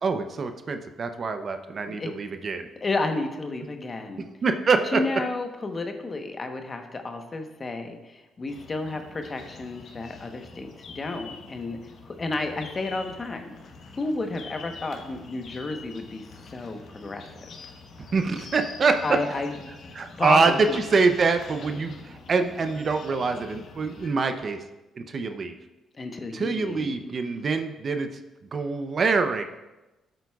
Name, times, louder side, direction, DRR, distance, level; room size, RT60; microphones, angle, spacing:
voice 1, 0.0-2.7 4.4-5.0 18.1-19.2 19.9-24.6 25.0-25.5 26.3-28.1 28.5-29.5, right 4 dB, 45° right, 7 dB, 0.6 m, -25 dB
voice 2, 2.8-4.3 4.9-11.8 12.0-13.5 14.0-16.2 16.5-17.2 19.0-19.9 20.2-20.8 25.9-27.1, left 2 dB, 30° left, 5 dB, 1.0 m, -31 dB
sound 1, 8.5-24.1, left 4 dB, 65° left, 1.2 m, -45 dB
12.5 x 7.9 x 2.4 m, 1.1 s
cardioid pair, 90°, 0 cm